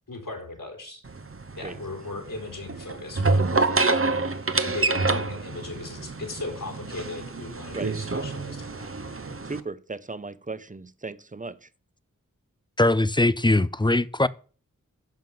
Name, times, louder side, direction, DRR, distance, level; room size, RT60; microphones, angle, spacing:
voice 1, 0.1-1.0 1.6-9.2, left 3 dB, 75° left, 3.9 m, -38 dB
sound 1, 1.0-9.6, right 3 dB, 40° right, 1.0 m, -27 dB
voice 2, 9.4-11.7, right 3 dB, 25° right, 0.7 m, -36 dB
voice 3, 12.8-14.3, left 2 dB, 15° left, 0.5 m, -21 dB
10.5 x 5.8 x 7.4 m
wide cardioid pair, 45°, 32 cm